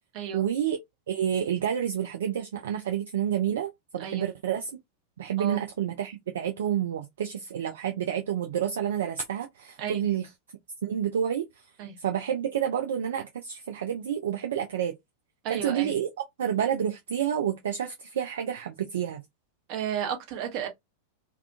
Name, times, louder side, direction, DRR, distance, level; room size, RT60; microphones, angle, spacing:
voice 1, 0.3-0.8 1.1-4.7 5.2-10.3 10.8-11.5 12.0-15.0 15.5-16.1 16.4-19.2, right 9 dB, 60° right, 0.3 m, -29 dB
voice 2, 15.4-15.9 19.7-20.7, right 9 dB, 45° right, 0.8 m, -32 dB
2.3 x 2.3 x 2.4 m
figure-of-eight pair, 90°, 0 cm